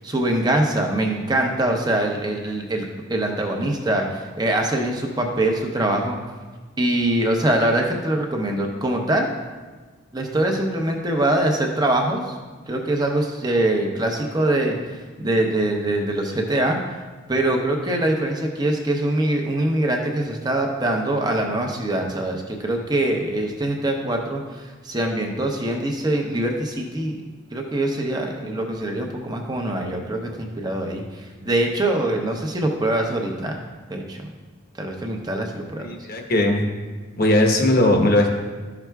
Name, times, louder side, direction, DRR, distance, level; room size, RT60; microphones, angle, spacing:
voice 1, 0.0-6.2 6.8-9.3 10.1-12.3 12.7-16.8 17.3-27.2 27.5-33.6 33.9-34.3 34.8-35.9, right 1 dB, 20° right, 2 dB, 0.8 m, -23 dB
voice 2, 35.8-36.6 37.2-38.3, left 1 dB, 45° left, 2 dB, 1.0 m, -18 dB
13.0 x 5.9 x 2.3 m, 1.4 s
head